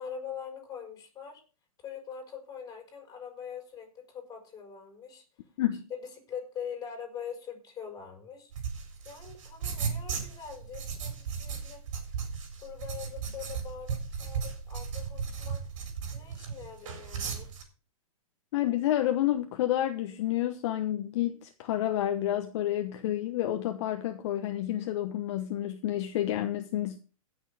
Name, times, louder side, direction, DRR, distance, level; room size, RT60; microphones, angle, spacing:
voice 1, 0.0-1.4 1.8-5.2 6.3-8.5 9.0-11.8 12.6-15.6 16.1-17.5, left 7 dB, 20° left, 4.7 m, -43 dB
sound 1, 8.5-17.6, right 6 dB, 60° right, 4.1 m, -36 dB
voice 2, 18.5-27.0, left 12 dB, 50° left, 1.1 m, -29 dB
17.0 x 6.4 x 4.8 m
hypercardioid pair, 125°, 18 cm